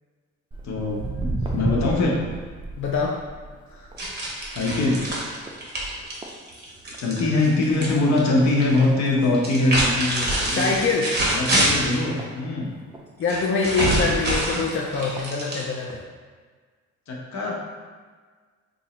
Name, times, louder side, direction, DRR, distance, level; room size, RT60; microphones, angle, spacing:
Walk footsteps, 0.5-7.2 7.5-7.8 8.4-8.5 9.2-9.3 9.7-9.8 9.9-10.0 10.6-10.8 11.4-13.0 13.6-13.7 14.4-14.5 14.9-15.2 15.9-16.0, right 2 dB, 15° right, 0.5 m, -33 dB
voice 1, 0.6-2.2 3.7-3.9 4.3-5.0 7.0-10.7 11.3-12.7 17.1-17.6, left 2 dB, 65° left, -2 dB, 0.9 m, -23 dB
voice 2, 2.8-3.1 10.5-11.1 13.2-16.0, left 4 dB, 45° left, -2 dB, 0.5 m, -24 dB
sound 1, 4.0-8.8 9.3-12.0 13.3-16.0, right 1 dB, 35° right, 1.1 m, -25 dB
2.9 x 2.6 x 4.1 m, 1.5 s
cardioid pair, 90°, 30 cm